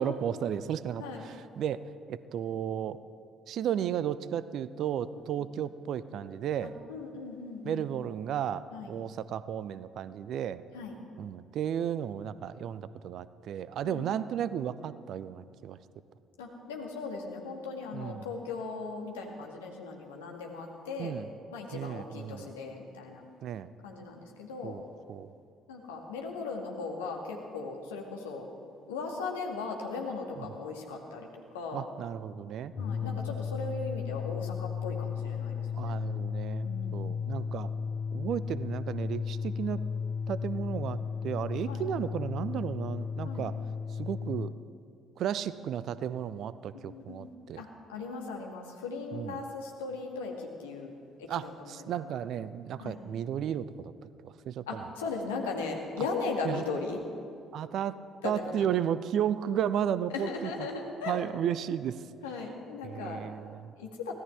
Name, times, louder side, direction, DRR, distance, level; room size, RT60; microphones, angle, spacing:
voice 1, 0.0-3.0 3.5-6.7 7.6-10.6 11.2-15.8 17.9-18.3 21.0-21.3 21.7-22.5 23.4-23.7 24.6-24.8 25.1-25.3 30.4-30.5 31.7-32.7 33.0-33.4 35.7-37.7 38.1-39.8 40.3-41.0 41.2-43.6 44.0-44.5 45.2-47.6 49.1-49.4 51.3-54.9 56.4-56.6 57.5-58.0 58.2-60.7 61.1-62.0 62.8-63.7, right 9 dB, 55° right, 15 dB, 0.5 m, -34 dB
voice 2, 6.6-7.8 8.7-8.9 10.7-10.9 13.8-14.1 16.4-21.1 21.5-23.2 23.8-24.8 25.7-28.5 28.9-31.9 32.8-36.0 36.6-37.2 41.7-41.8 43.2-43.5 46.7-47.3 47.6-52.0 52.8-53.0 54.7-57.0 58.2-58.7 60.1-61.2 62.2-63.2 63.8-64.1, left 4 dB, 70° left, 0 dB, 1.9 m, -38 dB
sound 1, 32.6-44.6, left 6 dB, 40° left, 0.3 m, -35 dB
24.5 x 17.0 x 3.4 m, 2.4 s
figure-of-eight pair, 50°, 0 cm